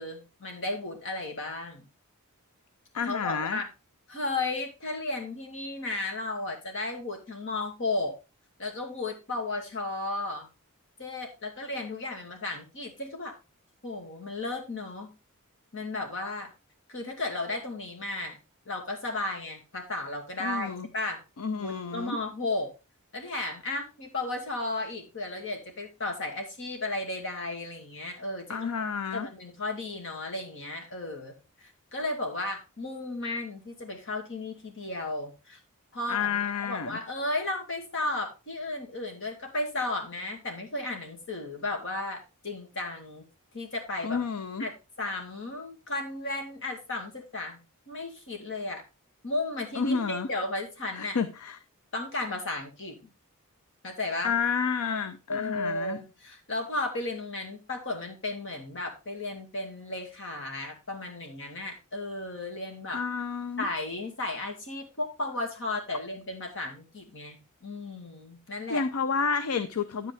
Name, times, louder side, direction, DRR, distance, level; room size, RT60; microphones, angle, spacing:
voice 1, 0.0-1.9 3.0-3.7 4.1-8.2 8.6-10.5 11.0-13.3 13.8-15.1 15.7-16.5 16.9-18.4 18.7-21.2 21.5-22.7 23.1-28.7 29.1-31.4 31.6-35.6 35.9-43.2 43.5-44.2 44.6-44.7 45.0-47.6 47.9-48.8 49.2-51.2 51.9-52.9 53.8-54.4 55.3-63.0 63.6-68.9, left 2 dB, 60° left, 2.3 m, -34 dB
voice 2, 2.9-3.6 20.4-20.9 21.4-22.2 28.5-29.3 36.1-37.0 44.0-44.7 49.7-50.3 50.9-51.6 54.2-56.0 62.9-63.7 68.7-70.1, left 5 dB, 75° left, 0.6 m, -30 dB
9.4 x 8.2 x 3.4 m
head